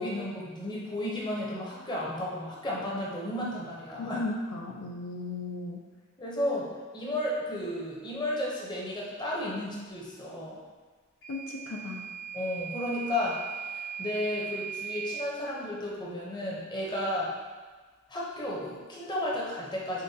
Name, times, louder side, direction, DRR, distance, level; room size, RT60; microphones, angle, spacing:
voice 1, 0.0-4.2 6.2-10.6 12.3-17.3 18.1-20.0, left 1 dB, 20° left, -5 dB, 0.7 m, -33 dB
voice 2, 4.0-5.8 11.3-12.1, left 2 dB, 75° left, 1 dB, 0.4 m, -36 dB
Microwave oven / Alarm, 11.2-15.3, right 8 dB, 60° left, 1.1 m, -38 dB
6.4 x 2.2 x 2.7 m, 1.4 s
head